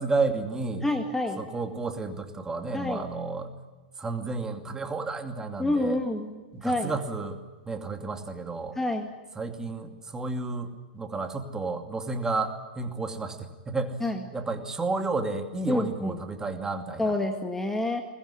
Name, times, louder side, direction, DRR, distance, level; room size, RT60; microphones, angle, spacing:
voice 1, 0.0-0.8 1.4-3.5 4.0-6.0 6.5-7.4 7.7-8.8 9.4-14.0 14.3-17.0, right 3 dB, 10° right, 6 dB, 2.5 m, -31 dB
voice 2, 0.8-1.4 2.7-3.1 5.6-6.9 8.8-9.1 14.0-14.2 15.7-16.2 17.0-18.0, left 2 dB, 5° left, 4 dB, 1.9 m, -28 dB
22.0 x 20.0 x 10.0 m, 1.3 s
hypercardioid pair, 135°, 5 cm